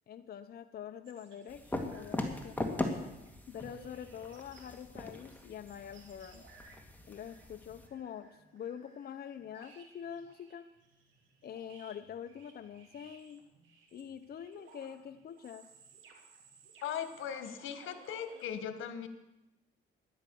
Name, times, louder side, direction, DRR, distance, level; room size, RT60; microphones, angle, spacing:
voice 1, 0.1-2.6 3.5-6.5 7.1-10.7 11.4-13.4 13.9-15.7, left 8 dB, 50° left, 9 dB, 0.7 m, -45 dB
sound 1, 1.0-18.5, right 5 dB, 75° right, 3.0 m, -60 dB
sound 2, 1.5-7.9, left 1 dB, 10° left, 2.0 m, -40 dB
voice 2, 16.8-19.1, left 8 dB, 80° left, 10 dB, 1.4 m, -39 dB
13.0 x 10.5 x 6.9 m, 0.95 s
cardioid pair, 90°, 20 cm